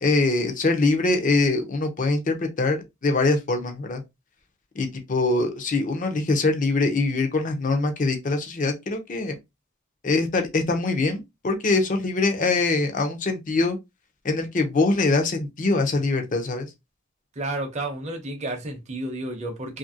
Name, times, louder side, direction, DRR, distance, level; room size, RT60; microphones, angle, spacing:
voice 1, 0.0-4.0 4.8-9.3 10.0-13.8 14.2-16.7, left 3 dB, 40° left, 0.6 m, -23 dB
voice 2, 17.4-19.8, right 2 dB, 35° right, 0.6 m, -31 dB
2.8 x 2.5 x 2.6 m
head